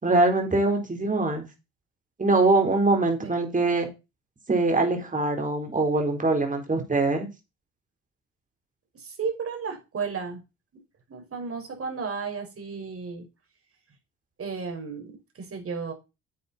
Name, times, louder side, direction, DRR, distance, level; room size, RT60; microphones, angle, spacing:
voice 1, 0.0-1.5 2.2-3.9 4.5-7.3, right 2 dB, 25° right, 4.4 m, -23 dB
voice 2, 8.9-10.4 11.1-13.3 14.4-15.9, right 5 dB, 50° right, 5.6 m, -33 dB
10.0 x 8.7 x 4.5 m
cardioid pair, 90°, 30 cm